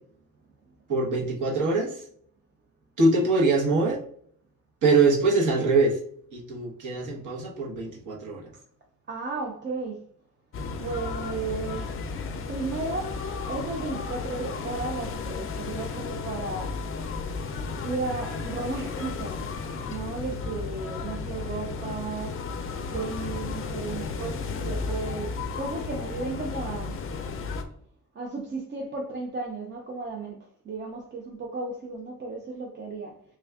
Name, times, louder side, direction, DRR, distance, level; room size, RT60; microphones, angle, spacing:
voice 1, 0.9-2.0 3.0-4.0 4.8-6.0 6.3-8.4, right 3 dB, 60° right, 1.1 m, -23 dB
voice 2, 9.1-10.1 10.8-12.0 12.5-13.2 13.5-16.7 17.8-19.4 19.9-22.3 22.9-27.0 28.1-30.4 30.6-33.2, right 3 dB, 35° right, 0.5 m, -34 dB
sound 1, 10.5-27.6, left 4 dB, 40° left, 0.4 m, -34 dB
3.4 x 2.3 x 3.4 m
wide cardioid pair, 165°, 34 cm